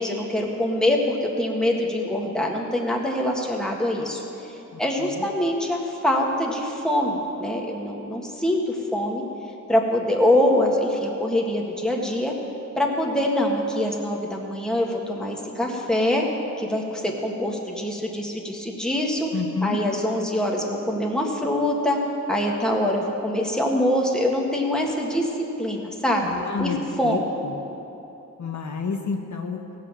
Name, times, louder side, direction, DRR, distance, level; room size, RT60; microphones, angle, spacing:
voice 1, 0.0-4.2 4.8-9.2 9.7-12.3 12.7-16.2 16.6-19.3 19.6-22.0 22.3-25.3 25.6-26.7 27.0-27.2, left 1 dB, ahead, -1 dB, 1.7 m, -24 dB
voice 2, 4.7-5.3 19.3-19.8 26.2-26.8 27.0-27.6 28.4-29.8, left 5 dB, 65° left, 2 dB, 1.1 m, -30 dB
17.5 x 6.0 x 7.4 m, 3.0 s
wide cardioid pair, 90°, 31 cm